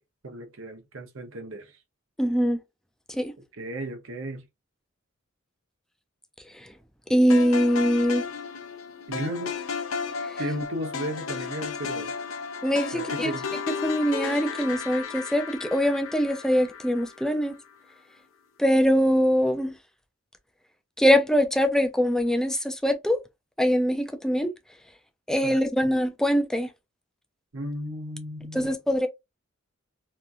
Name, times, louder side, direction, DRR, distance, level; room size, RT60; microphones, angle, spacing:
voice 1, 0.2-1.8 3.6-4.5 9.1-9.5 10.4-12.1 12.9-13.5 25.4-25.6 27.5-28.8, equal, 70° right, 0.8 m, -34 dB
voice 2, 2.2-2.6 3.1-3.3 6.6-6.7 7.1-8.3 10.2-10.4 12.6-13.3 13.8-17.6 18.6-19.7 21.0-23.2 23.6-24.5 25.3-26.7 28.5-29.1, equal, 5° left, 0.4 m, -23 dB
sound 1, 7.3-17.6, left 5 dB, 80° left, 0.6 m, -34 dB
2.9 x 2.5 x 2.3 m
head